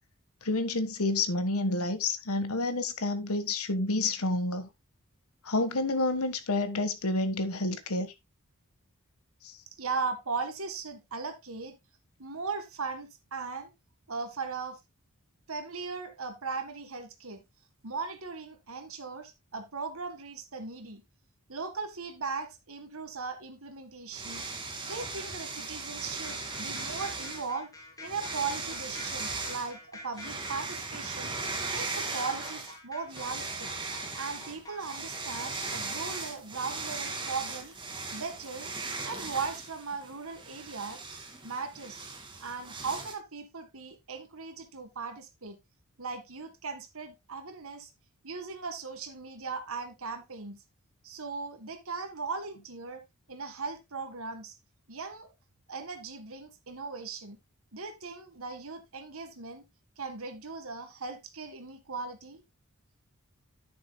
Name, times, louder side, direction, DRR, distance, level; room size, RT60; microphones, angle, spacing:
voice 1, 0.4-4.7 5.4-8.1 9.4-9.5, left 2 dB, 70° left, 1.5 m, -29 dB
voice 2, 9.8-11.8 12.2-13.7 14.1-14.8 15.5-17.4 17.8-21.0 21.5-24.4 24.8-27.7 28.0-33.7 34.2-37.7 38.1-38.7 39.0-41.0 41.4-42.1 42.4-45.6 46.0-47.9 48.2-50.6 51.0-53.0 53.3-54.6 54.9-55.3 55.7-57.4 57.7-59.6 60.0-62.4, right 4 dB, 70° right, 1.9 m, -38 dB
sound 1, 24.1-27.5 28.0-29.7 30.1-32.8 33.1-43.1, right 3 dB, 20° right, 2.2 m, -38 dB
sound 2, 26.2-36.2, left 2 dB, 15° left, 3.3 m, -48 dB
10.5 x 9.5 x 2.2 m
head